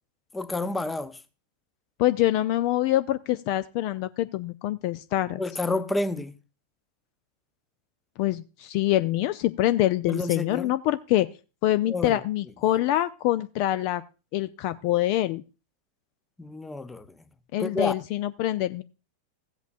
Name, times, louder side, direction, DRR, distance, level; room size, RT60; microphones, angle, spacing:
voice 1, 0.3-1.2 5.4-6.3 10.1-10.7 11.9-12.2 16.4-17.1 17.6-17.9, left 2 dB, 10° left, 0.7 m, -29 dB
voice 2, 2.0-5.4 8.2-11.3 11.6-14.0 14.3-15.4 17.5-18.8, left 14 dB, 45° left, 0.4 m, -25 dB
15.5 x 8.1 x 2.6 m
figure-of-eight pair, 90°, 0 cm